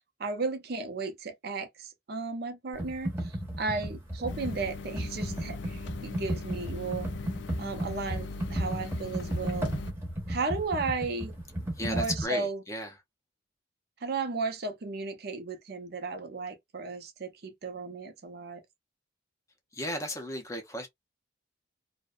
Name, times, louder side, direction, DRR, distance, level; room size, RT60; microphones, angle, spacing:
voice 1, 0.2-7.1 7.6-9.7 10.3-11.3 11.8-12.6 14.0-18.6, right 3 dB, 50° right, 0.6 m, -34 dB
Computer keyboard, 2.7-12.2, right 1 dB, 10° right, 0.8 m, -34 dB
sound 1, 4.3-9.9, left 3 dB, 60° left, 0.3 m, -40 dB
voice 2, 11.8-12.9 19.7-20.9, left 1 dB, 15° left, 0.6 m, -34 dB
2.6 x 2.1 x 2.3 m
head